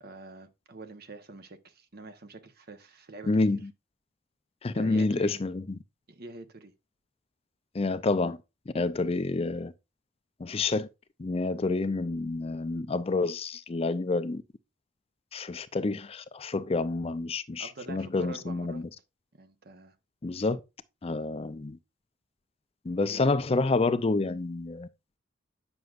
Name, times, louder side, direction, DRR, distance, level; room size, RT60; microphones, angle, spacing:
voice 1, 0.0-3.6 4.7-5.3 6.1-6.7 17.6-18.8 19.3-20.0 23.1-23.4, right 2 dB, 55° right, 1.1 m, -46 dB
voice 2, 3.3-3.6 4.6-5.6 7.7-8.4 8.7-9.7 10.4-10.9 11.2-14.4 15.3-18.9 20.2-20.6 21.0-21.8 22.8-24.9, left 3 dB, 30° left, 0.5 m, -28 dB
9.3 x 6.2 x 2.5 m
head